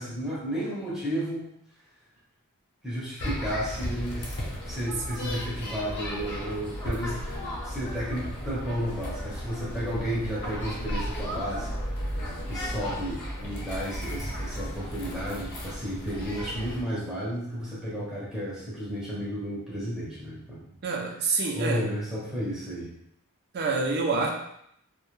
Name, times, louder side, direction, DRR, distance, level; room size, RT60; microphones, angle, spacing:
voice 1, 0.0-1.5 2.8-4.3 4.6-7.2 7.6-11.7 12.5-20.6 21.3-22.9, equal, 5° right, -8 dB, 0.6 m, -32 dB
sound 1, 3.2-16.8, equal, 50° left, 0.6 m, -34 dB
voice 2, 20.8-21.9 23.5-24.3, right 3 dB, 45° right, 1 dB, 0.4 m, -27 dB
2.1 x 2.1 x 3.0 m, 0.74 s
head